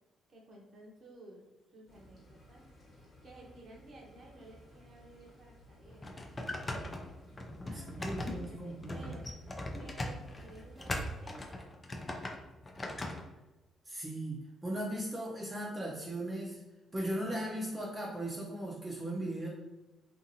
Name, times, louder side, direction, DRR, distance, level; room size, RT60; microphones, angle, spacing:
voice 1, 0.3-1.4 1.7-2.6 3.2-6.2 7.6-9.2 9.8-11.8, right 2 dB, 55° right, -1 dB, 0.7 m, -54 dB
sound 1, 1.9-11.5, equal, 45° left, 1.0 m, -58 dB
sound 2, 5.9-13.2, left 1 dB, 25° left, 0.4 m, -40 dB
voice 2, 7.7-9.1 13.8-16.6 16.9-19.5, right 1 dB, 20° right, -4 dB, 0.6 m, -38 dB
2.6 x 2.5 x 2.7 m, 1.1 s
cardioid pair, 90°, 0 cm